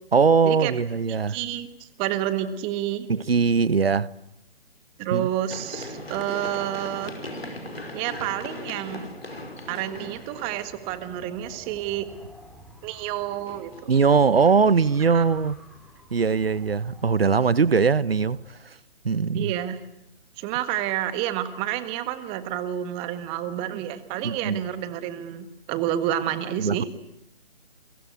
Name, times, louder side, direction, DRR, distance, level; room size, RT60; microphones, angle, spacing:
voice 1, 0.1-1.4 3.1-4.1 5.1-5.3 13.9-15.6 16.1-18.4 19.0-19.5 24.2-24.6 26.6-26.8, right 5 dB, 75° right, 1.0 m, -21 dB
voice 2, 1.1-3.1 5.0-7.2 7.9-9.1 9.7-12.1 12.8-13.9 15.0-15.2 19.3-19.8 20.4-26.8, right 12 dB, 20° right, 1.6 m, -29 dB
Run, 5.5-11.3 13.2-14.7, left 1 dB, 85° left, 5.4 m, -39 dB
Wind, 9.8-18.5, equal, ahead, 3.2 m, -50 dB
29.5 x 23.0 x 8.3 m
figure-of-eight pair, 135°, 30 cm